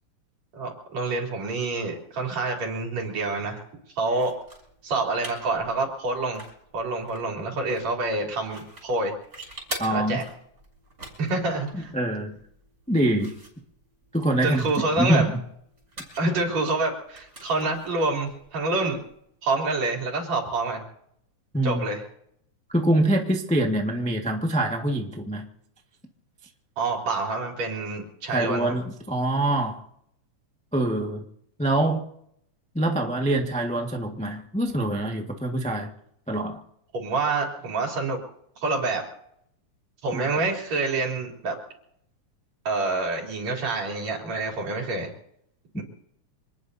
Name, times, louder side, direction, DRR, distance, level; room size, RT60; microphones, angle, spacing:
voice 1, 0.5-3.6 4.0-4.4 4.8-6.4 6.7-9.1 9.9-10.2 11.2-11.9 14.4-15.2 16.2-19.0 19.4-20.8 21.6-22.0 26.8-28.8 36.9-38.2 38.6-39.1 40.0-41.6 42.6-45.1 45.8-45.9, right 3 dB, 60° right, -1 dB, 4.7 m, -27 dB
sound 1, 4.1-19.3, right 1 dB, 30° right, 6.4 m, -45 dB
voice 2, 9.8-10.2 11.7-12.4 12.9-13.3 14.1-14.6 15.0-15.4 16.2-16.3 21.5-21.8 22.7-25.5 28.3-29.8 30.7-31.2 31.6-32.0 32.7-35.9 36.3-36.6 45.7-45.8, right 1 dB, 10° left, 1 dB, 0.3 m, -24 dB
26.5 x 19.5 x 2.7 m, 0.71 s
omnidirectional pair, 3.5 m